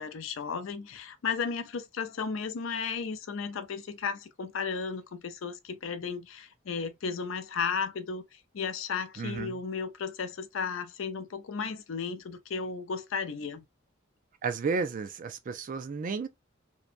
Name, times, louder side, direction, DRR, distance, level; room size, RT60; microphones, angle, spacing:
voice 1, 0.0-13.6, left 5 dB, 75° left, 0.5 m, -34 dB
voice 2, 9.2-9.6 14.4-16.3, right 4 dB, 40° right, 0.4 m, -32 dB
2.7 x 2.2 x 2.4 m
head